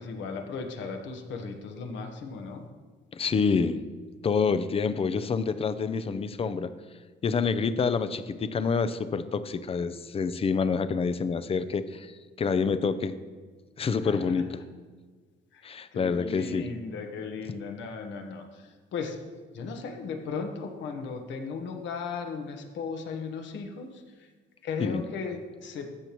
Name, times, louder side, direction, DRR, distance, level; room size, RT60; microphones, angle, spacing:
voice 1, 0.0-2.6 14.0-14.2 15.5-15.6 15.9-19.2 19.5-24.3 24.6-25.9, left 5 dB, 75° left, 4 dB, 1.3 m, -36 dB
voice 2, 3.1-3.8 4.2-6.7 7.2-12.1 12.4-13.2 13.8-14.6 15.6-16.6 24.8-25.0, left 5 dB, 30° left, 12 dB, 0.5 m, -27 dB
13.5 x 6.8 x 3.1 m, 1.4 s
cardioid pair, 105°, 19 cm